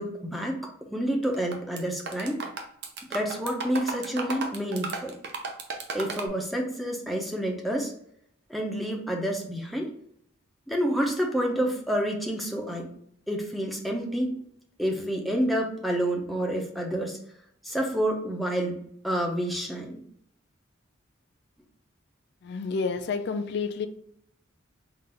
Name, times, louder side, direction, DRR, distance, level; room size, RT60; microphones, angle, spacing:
voice 1, 0.0-2.4 3.1-5.1 5.9-7.9 8.5-9.9 10.7-12.9 13.3-14.3 14.8-17.2 17.6-20.0, equal, ahead, 0 dB, 0.6 m, -29 dB
sound 1, 1.2-1.8 2.1-6.3, right 3 dB, 55° right, 0.6 m, -34 dB
voice 2, 22.4-23.9, left 4 dB, 55° left, 7 dB, 0.4 m, -29 dB
3.8 x 2.5 x 4.3 m, 0.68 s
head